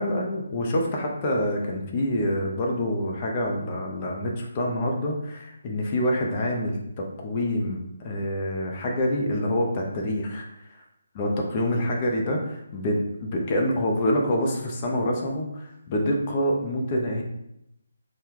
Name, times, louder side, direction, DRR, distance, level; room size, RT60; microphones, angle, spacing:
voice 1, 0.0-10.8 11.2-17.2, left 1 dB, 30° left, -1 dB, 0.5 m, -26 dB
2.8 x 2.2 x 3.6 m, 0.81 s
figure-of-eight pair, 150°, 0 cm